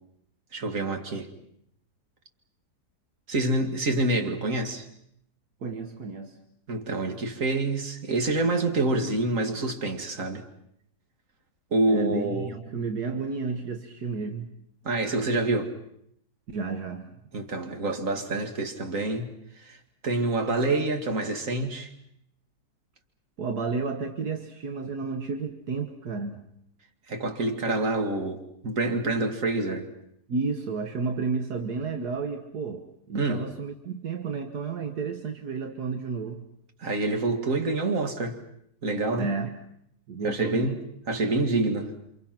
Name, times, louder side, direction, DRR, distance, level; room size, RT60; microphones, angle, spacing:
voice 1, 0.5-1.3 3.3-4.9 6.7-10.4 11.7-12.5 14.8-15.7 17.3-19.3 19.6-19.8 20.0-21.9 27.1-29.9 33.1-33.5 36.8-38.4 38.8-39.3 40.2-41.9, right 2 dB, 50° right, 2.5 m, -27 dB
voice 2, 5.6-6.4 11.9-14.5 16.5-17.2 23.4-26.5 30.3-36.5 39.1-39.6 40.1-40.8, right 4 dB, 75° right, 1.9 m, -32 dB
29.0 x 26.0 x 6.0 m
omnidirectional pair, 1.7 m